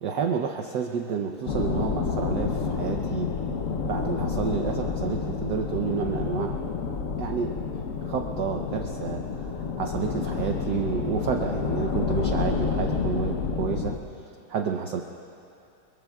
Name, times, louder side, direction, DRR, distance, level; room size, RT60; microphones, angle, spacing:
voice 1, 0.0-3.3 3.9-6.5 7.2-7.8 8.0-9.2 9.6-13.9 14.5-15.0, right 6 dB, 65° right, 3 dB, 1.2 m, -30 dB
sound 1, 1.5-14.0, left 5 dB, 60° left, 0.8 m, -29 dB
27.0 x 22.5 x 2.4 m, 2.7 s
omnidirectional pair, 2.3 m